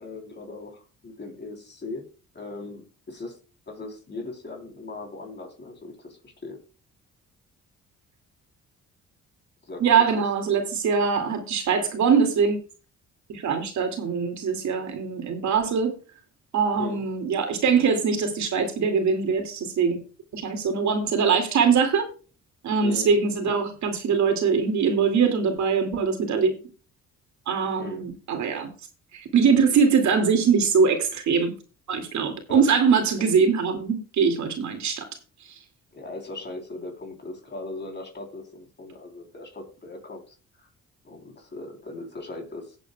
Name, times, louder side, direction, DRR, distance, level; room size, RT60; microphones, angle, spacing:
voice 1, 0.0-2.1 2.3-3.4 3.7-6.6 9.7-10.2 16.8-17.0 22.8-23.1 23.5-23.6 27.8-28.1 32.5-32.6 33.2-33.3 35.9-40.7 41.0-42.8, left 2 dB, 35° left, 3 dB, 3.5 m, -39 dB
voice 2, 9.8-12.6 13.3-15.9 16.5-20.0 20.3-22.1 22.6-26.6 27.5-28.7 29.1-31.5 31.9-35.1 35.4-35.6, right 6 dB, 70° right, 4 dB, 2.5 m, -22 dB
18.5 x 8.0 x 2.3 m, 0.35 s
cardioid pair, 90°, 30 cm